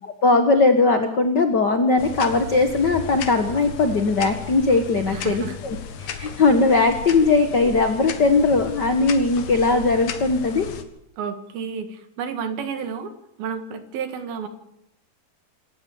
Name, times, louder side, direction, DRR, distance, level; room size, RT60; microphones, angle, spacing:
voice 1, 0.2-10.7, left 3 dB, 75° left, 7 dB, 0.9 m, -19 dB
sound 1, 2.0-10.8, left 7 dB, 60° left, 2.6 m, -35 dB
voice 2, 5.1-5.6 11.2-13.1 13.4-14.5, right 6 dB, 80° right, 8 dB, 3.7 m, -31 dB
26.5 x 13.5 x 7.7 m, 0.79 s
omnidirectional pair, 4.2 m